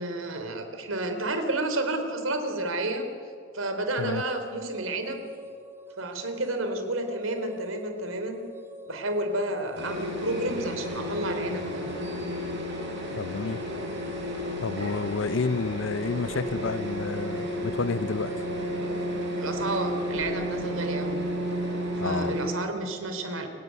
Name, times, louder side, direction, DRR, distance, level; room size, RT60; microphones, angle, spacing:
voice 1, 0.0-3.0 3.5-5.2 6.0-8.4 8.9-11.9 19.4-21.2 22.0-23.5, right 2 dB, 85° right, 3.7 m, -30 dB
sound 1, 3.9-21.7, equal, 10° right, 2.0 m, -46 dB
sound 2, 9.8-22.5, equal, 60° right, 5.6 m, -32 dB
voice 2, 13.2-13.6 14.6-18.3 22.0-22.4, left 4 dB, 65° left, 0.6 m, -30 dB
29.0 x 17.5 x 9.5 m
head